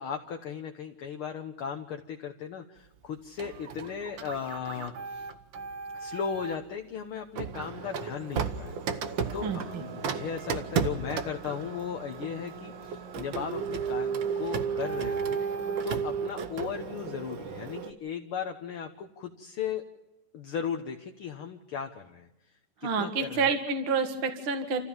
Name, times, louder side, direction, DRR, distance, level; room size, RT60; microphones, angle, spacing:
voice 1, 0.0-5.3 5.9-9.0 9.3-19.8 20.3-22.3 22.8-23.6, left 7 dB, 60° left, 4 dB, 1.5 m, -37 dB
Printer, 3.4-6.6 7.4-17.9, right 6 dB, 80° right, 1.0 m, -34 dB
voice 2, 22.8-24.8, right 4 dB, 45° right, 6 dB, 2.4 m, -28 dB
28.0 x 15.0 x 7.2 m, 0.99 s
omnidirectional pair, 3.7 m